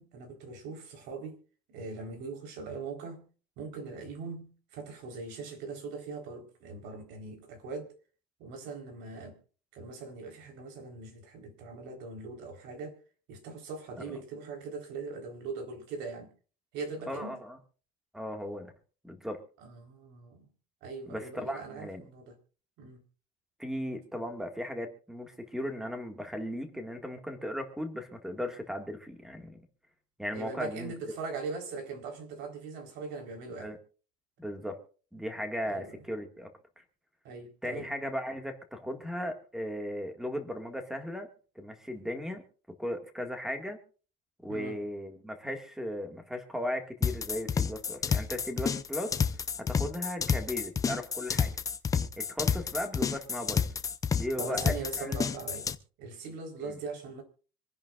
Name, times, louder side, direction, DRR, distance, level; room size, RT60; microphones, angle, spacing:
voice 1, 0.0-1.4 1.7-3.2 3.6-7.9 8.4-9.4 9.7-13.0 13.3-16.3 16.7-17.4 19.6-20.5 20.8-22.3 22.8-23.0 30.3-33.7 35.7-35.9 37.2-37.9 44.5-44.8 54.4-55.7 56.0-57.2, right 4 dB, 65° right, 4.0 m, -41 dB
voice 2, 17.1-17.6 18.1-18.7 19.0-19.4 21.1-22.0 23.6-29.6 30.2-30.9 33.6-33.8 34.4-34.8 35.1-36.5 37.6-41.3 41.6-43.8 44.4-49.2 49.6-51.5 52.2-53.7 54.1-55.2, equal, ahead, 1.8 m, -37 dB
sound 1, 47.0-55.8, left 6 dB, 15° left, 0.6 m, -30 dB
26.0 x 10.5 x 2.4 m
cardioid pair, 165°, 20 cm